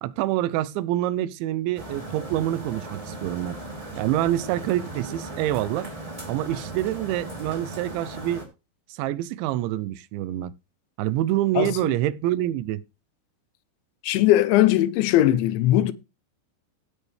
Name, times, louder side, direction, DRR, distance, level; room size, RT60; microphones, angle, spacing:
voice 1, 0.0-3.6 4.0-5.9 6.3-8.4 8.9-10.5 11.0-12.8, right 14 dB, 85° right, 3.1 m, -26 dB
sound 1, 1.7-8.4, right 2 dB, 10° right, 2.7 m, -37 dB
voice 2, 11.6-11.9 14.0-15.9, left 14 dB, 80° left, 3.1 m, -19 dB
16.5 x 8.6 x 3.4 m
omnidirectional pair, 5.3 m